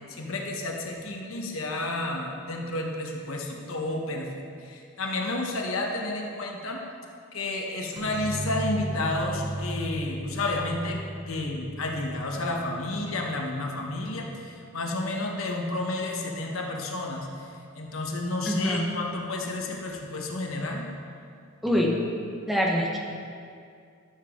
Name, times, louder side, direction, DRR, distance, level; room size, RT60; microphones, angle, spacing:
voice 1, 0.1-4.3 4.6-6.8 7.3-17.5 17.8-20.9, left 2 dB, 75° left, 1 dB, 1.2 m, -31 dB
sound 1, 8.0-13.5, right 1 dB, 85° right, 2.2 m, -35 dB
voice 2, 18.4-18.8 21.6-22.0 22.5-23.0, equal, ahead, -3 dB, 1.0 m, -24 dB
13.0 x 7.1 x 3.8 m, 2.4 s
head